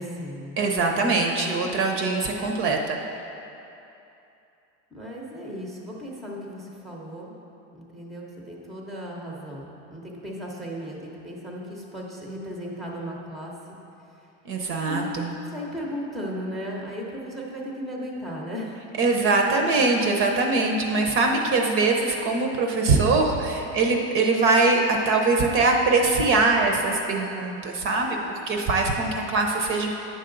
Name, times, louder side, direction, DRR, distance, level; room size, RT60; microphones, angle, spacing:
voice 1, 0.0-0.6 4.9-7.3 7.7-13.5 14.9-18.9, equal, ahead, -2 dB, 0.7 m, -36 dB
voice 2, 0.6-3.0 14.5-15.3 19.0-29.9, right 3 dB, 35° right, 2 dB, 0.7 m, -22 dB
9.3 x 6.8 x 3.8 m, 2.8 s
cardioid pair, 155°, 36 cm